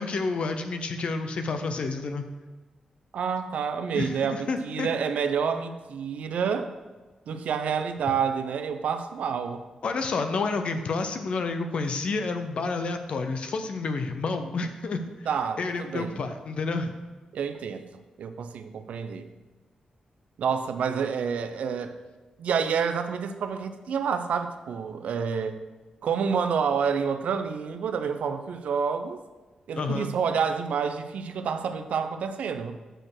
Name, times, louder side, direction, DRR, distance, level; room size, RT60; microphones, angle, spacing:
voice 1, 0.0-2.3 3.9-4.9 9.8-15.0 15.6-16.9 29.7-30.1, left 3 dB, 55° left, 7 dB, 0.6 m, -29 dB
voice 2, 3.1-6.7 7.3-9.7 15.2-16.3 17.3-17.9 18.2-19.3 20.4-22.0 22.4-25.6 26.0-29.2 29.7-32.8, right 6 dB, 80° right, 8 dB, 0.6 m, -28 dB
7.6 x 4.4 x 6.6 m, 1.3 s
wide cardioid pair, 150°, 2 cm